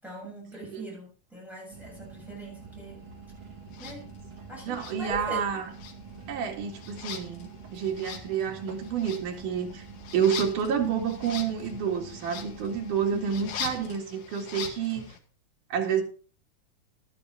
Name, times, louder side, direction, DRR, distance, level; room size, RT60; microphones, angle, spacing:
voice 1, 0.0-3.0 3.8-4.1 4.5-5.5 13.1-13.3, equal, ahead, 7.0 m, -41 dB
sound 1, 1.7-13.9, right 4 dB, 45° right, 2.7 m, -46 dB
sound 2, 3.7-4.0 4.7-5.5 5.7-15.2, left 7 dB, 90° left, 3.0 m, -42 dB
voice 2, 4.7-5.7 6.3-9.9 10.1-15.0 15.7-16.0, right 7 dB, 80° right, 3.6 m, -29 dB
12.0 x 12.0 x 3.6 m
omnidirectional pair, 3.6 m